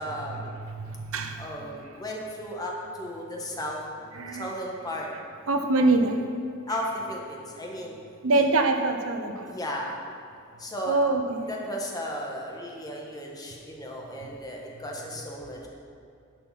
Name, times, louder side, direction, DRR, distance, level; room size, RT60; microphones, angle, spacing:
voice 1, 0.0-0.4 1.4-3.8 4.4-5.1 6.7-7.9 8.3-8.4 9.5-10.0 10.6-11.0 11.5-15.7, equal, 20° left, -2 dB, 1.4 m, -35 dB
voice 2, 0.6-1.4 4.1-4.5 5.5-6.2 8.2-9.5 10.9-11.5 14.2-14.3, right 2 dB, 80° right, 6 dB, 0.8 m, -24 dB
11.0 x 5.5 x 5.9 m, 2.5 s
head